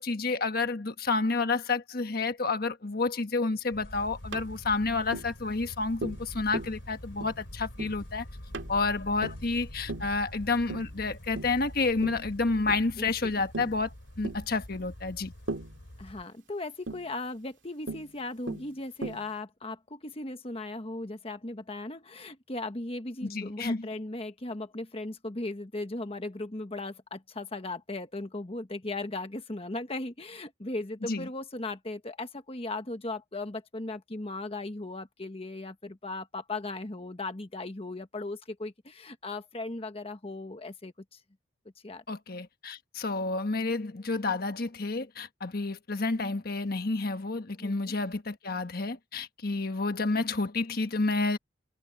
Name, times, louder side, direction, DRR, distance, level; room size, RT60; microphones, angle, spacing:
voice 1, 0.0-8.3 8.7-15.3 23.2-23.9 31.0-31.3 42.1-51.4, left 3 dB, 55° left, 1.3 m, -30 dB
sound 1, 3.7-16.2, left 1 dB, 90° left, 3.2 m, -45 dB
Tap, 4.3-4.5 5.1-5.3 6.0-6.3 6.5-6.8 7.2-7.4 7.8-8.0 8.5-8.8 9.2-9.5 9.9-10.1 10.7-10.9 11.4-11.6 12.0-12.3 12.7-12.9 13.5-13.8 14.2-14.4 15.5-15.8 16.9-17.1 17.9-18.1 18.5-18.7 19.0-19.3, right 2 dB, 85° right, 2.4 m, -37 dB
voice 2, 13.0-13.4 16.0-41.2 41.8-42.0 47.5-47.9, left 2 dB, 30° left, 1.3 m, -37 dB
head